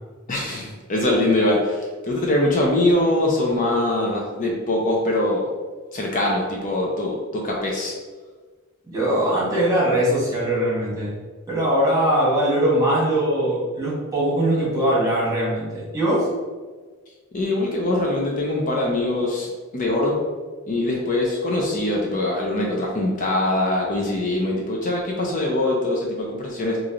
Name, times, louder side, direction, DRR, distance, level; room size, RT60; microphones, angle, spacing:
voice 1, 0.3-5.4 5.9-7.9 17.3-19.5 19.7-20.2 20.7-26.8, left 1 dB, 40° left, -2 dB, 0.5 m, -23 dB
voice 2, 8.9-11.1 11.5-16.3, right 1 dB, 15° right, -7 dB, 1.3 m, -21 dB
3.1 x 2.5 x 3.8 m, 1.4 s
head